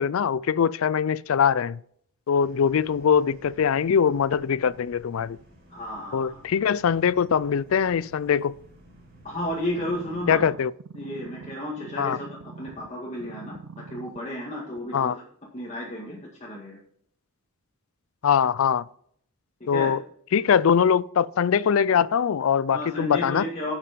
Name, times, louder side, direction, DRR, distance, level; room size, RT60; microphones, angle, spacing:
voice 1, 0.0-1.8 2.3-5.4 6.1-8.6 10.3-10.7 12.0-12.2 14.9-15.2 18.2-18.9 19.7-20.0 20.3-23.5, left 7 dB, 70° left, 0.4 m, -22 dB
sound 1, 2.4-10.5, right 1 dB, 50° right, 5.2 m, -53 dB
voice 2, 5.7-6.4 9.2-10.5 10.9-15.1 15.5-16.8 19.7-19.9 22.7-23.7, left 1 dB, 30° left, 1.8 m, -33 dB
sound 2, 9.7-12.9 13.2-14.2 14.8-14.9, right 4 dB, 75° right, 0.5 m, -43 dB
10.0 x 7.3 x 5.2 m
head